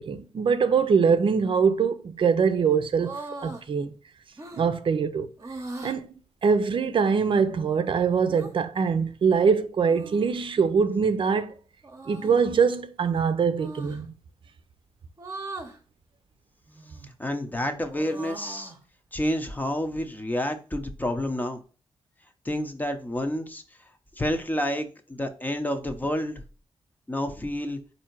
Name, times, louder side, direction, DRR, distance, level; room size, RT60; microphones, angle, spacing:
voice 1, 0.0-3.2 3.4-3.9 4.5-5.3 5.8-6.1 6.4-11.5 12.1-14.1, right 6 dB, 60° right, 0.6 m, -23 dB
sound 1, 3.0-3.7 4.4-4.7 5.4-6.0 8.3-8.5 9.9-10.5 11.8-12.5 13.6-14.0 15.2-15.8 16.7-17.2 17.6-18.8, right 2 dB, 30° right, 0.9 m, -40 dB
voice 2, 17.2-18.7 19.1-21.6 22.4-23.6 24.2-26.4 27.1-27.8, left 1 dB, 15° left, 0.8 m, -29 dB
4.3 x 2.7 x 4.5 m
cardioid pair, 85°, 10 cm